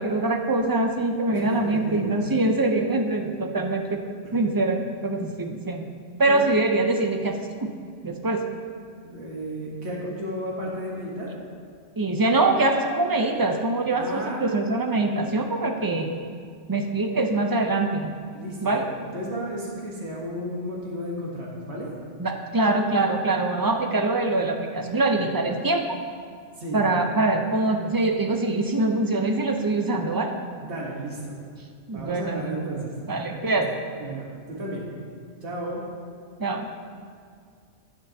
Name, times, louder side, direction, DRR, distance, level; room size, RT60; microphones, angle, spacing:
voice 1, 0.0-4.0 4.3-5.9 6.2-7.7 8.0-8.4 12.0-16.1 16.7-18.1 18.6-18.9 22.2-25.9 26.7-30.3 31.9-32.5 33.1-33.7 36.4-36.7, right 2 dB, 25° right, 4 dB, 0.5 m, -24 dB
voice 2, 1.3-2.3 4.2-4.4 6.3-6.5 9.0-11.3 14.0-14.6 18.3-21.9 26.6-26.8 30.6-31.4 31.9-33.4 34.0-34.9 35.4-35.8, right 1 dB, 90° right, -4 dB, 1.6 m, -33 dB
16.5 x 6.1 x 2.8 m, 2.1 s
omnidirectional pair, 1.1 m